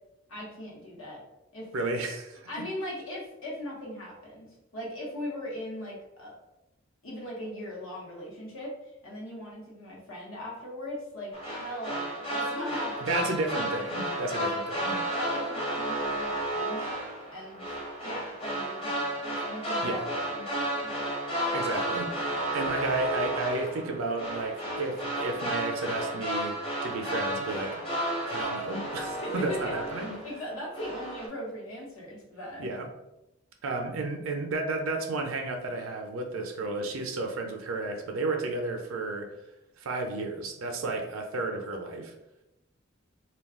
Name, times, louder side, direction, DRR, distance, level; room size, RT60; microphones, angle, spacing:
voice 1, 0.3-1.2 1.5-1.7 2.5-6.4 7.0-13.1 15.1-16.9 17.3-17.6 18.0-21.1 29.2-29.8 30.2-32.6, left 1 dB, 85° left, -3 dB, 1.0 m, -39 dB
voice 2, 1.7-2.5 13.0-15.0 19.8-20.1 21.5-26.6 26.8-27.8 28.3-30.2 32.6-32.9 33.6-39.3 39.8-42.1, right 2 dB, 85° right, 3 dB, 0.5 m, -32 dB
sound 1, 11.3-30.4 30.7-31.3, right 1 dB, 30° left, 0.7 m, -32 dB
2.3 x 2.2 x 3.5 m, 0.91 s
head